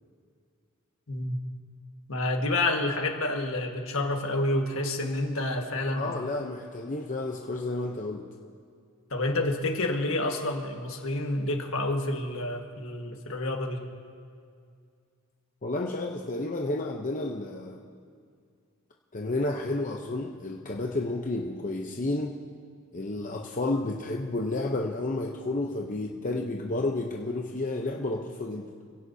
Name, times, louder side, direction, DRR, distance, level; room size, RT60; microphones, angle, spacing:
voice 1, 2.1-6.2 9.1-13.9, left 2 dB, 65° left, 3 dB, 1.6 m, -29 dB
voice 2, 5.9-8.3 15.6-17.8 19.1-22.4 22.9-28.7, left 2 dB, 35° left, 0 dB, 0.8 m, -31 dB
27.5 x 16.5 x 2.8 m, 2.2 s
head